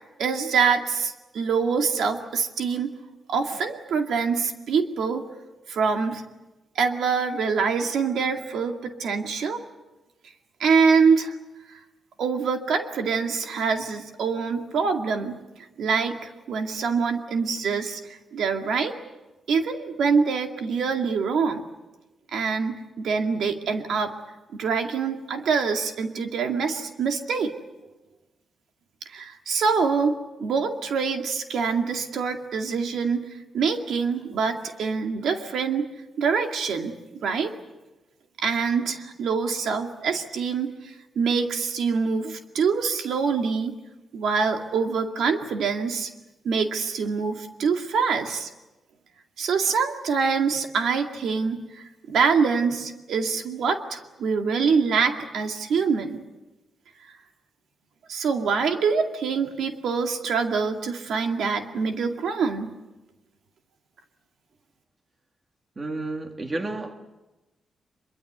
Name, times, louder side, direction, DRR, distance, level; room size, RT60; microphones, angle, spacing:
voice 1, 0.2-2.9 3.3-5.2 5.7-6.2 6.8-9.6 10.6-11.4 11.7-11.8 12.2-15.4 15.8-18.9 19.5-21.6 22.3-24.1 24.5-27.5 29.1-33.3 33.5-35.9 36.2-37.0 37.2-37.5 38.4-43.8 44.1-46.1 46.4-48.5 49.4-56.2 58.1-62.7, right 5 dB, 80° right, 4 dB, 2.2 m, -25 dB
voice 2, 65.8-66.9, right 2 dB, 25° right, 5 dB, 2.3 m, -31 dB
24.5 x 23.5 x 8.0 m, 1.1 s
wide cardioid pair, 155°, 0 cm